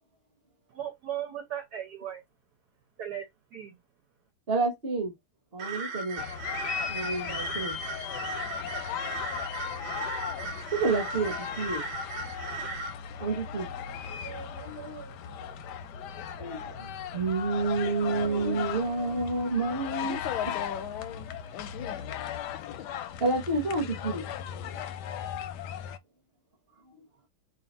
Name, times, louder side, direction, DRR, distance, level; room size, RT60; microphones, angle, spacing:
voice 1, 0.7-2.2 3.0-3.8, right 10 dB, 60° right, 1.3 m, -37 dB
voice 2, 4.5-5.1 5.5-6.2 6.9-7.8 10.7-11.8 13.2-15.5 16.4-20.5 23.2-24.2 24.6-24.8 26.9-27.0, right 3 dB, 35° right, 1.2 m, -30 dB
sound 1, 5.6-12.9, right 3 dB, 90° right, 1.5 m, -37 dB
sound 2, 6.2-26.0, left 9 dB, 70° left, 1.0 m, -37 dB
voice 3, 20.0-22.0 22.8-22.9, left 10 dB, 85° left, 1.4 m, -37 dB
3.3 x 2.4 x 4.1 m
omnidirectional pair, 2.1 m